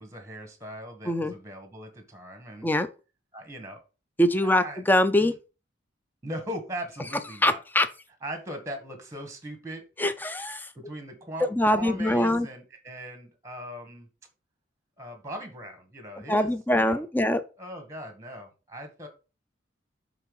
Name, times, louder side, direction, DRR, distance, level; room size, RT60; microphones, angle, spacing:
voice 1, 0.0-2.7 3.3-3.8 4.4-4.8 5.2-5.3 6.2-7.6 8.2-9.8 10.7-14.1 15.0-17.0 17.6-19.1, right 1 dB, 15° right, 1.8 m, -39 dB
voice 2, 4.2-5.3 7.4-7.9 10.0-10.7 11.5-12.5 16.3-17.4, left 1 dB, 10° left, 0.5 m, -23 dB
7.3 x 4.1 x 5.3 m
head